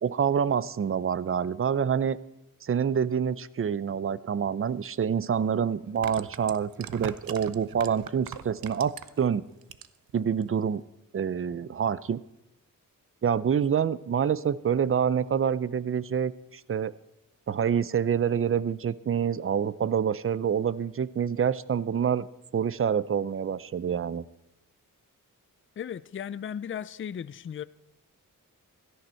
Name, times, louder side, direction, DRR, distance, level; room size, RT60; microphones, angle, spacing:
voice 1, 0.0-2.2 2.6-9.4 10.1-10.8 11.1-12.2 13.2-16.9 17.5-22.3 22.5-24.2, right 7 dB, 40° right, 0.5 m, -27 dB
sound 1, 4.8-4.9 5.8-9.3 9.6-10.1 10.4-10.5, right 9 dB, 90° right, 0.7 m, -40 dB
voice 2, 25.8-27.6, left 8 dB, 40° left, 0.4 m, -36 dB
16.5 x 13.0 x 4.4 m
wide cardioid pair, 100°, 34 cm